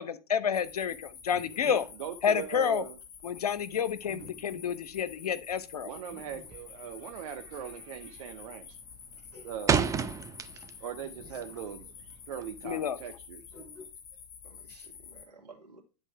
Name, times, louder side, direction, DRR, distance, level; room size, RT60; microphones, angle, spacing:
voice 1, 0.0-1.8 2.2-2.8 3.2-5.9 12.6-13.0, left 7 dB, 70° left, 0.7 m, -29 dB
sound 1, 0.5-15.2, left 7 dB, 35° left, 3.5 m, -49 dB
sound 2, 1.2-2.1 2.6-2.9 4.0-5.0 6.1-6.8 7.5-7.7 8.0-8.1 8.5-9.9 10.4-10.5 10.9-11.9 12.2-12.3 13.5-13.9, equal, 15° left, 4.4 m, -52 dB
voice 2, 1.6-3.0 5.8-8.8 9.4-9.9 10.8-13.4, right 8 dB, 60° right, 0.8 m, -40 dB
sound 3, 6.4-6.8 7.1-7.5 7.8-8.3 8.6-10.9 11.2-12.7, right 6 dB, 15° right, 0.6 m, -30 dB
voice 3, 14.4-15.8, right 3 dB, 80° right, 2.4 m, -55 dB
10.0 x 4.0 x 4.7 m
figure-of-eight pair, 85°, 20 cm